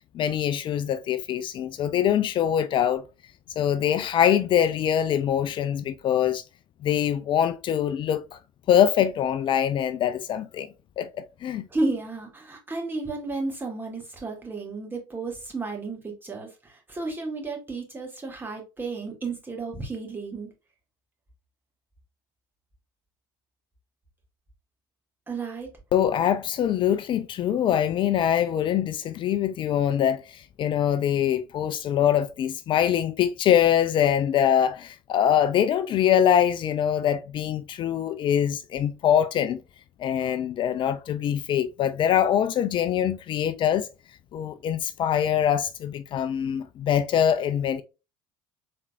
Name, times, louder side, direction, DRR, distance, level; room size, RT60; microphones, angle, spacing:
voice 1, 0.1-3.0 3.6-6.4 6.8-8.4 8.7-10.7 11.0-11.7 25.9-39.6 40.0-43.9 44.3-47.8, left 9 dB, 45° left, 0.5 m, -23 dB
voice 2, 11.7-20.5 25.3-25.7, right 3 dB, 20° right, 2.2 m, -32 dB
4.3 x 3.7 x 2.5 m
hypercardioid pair, 70°, 11 cm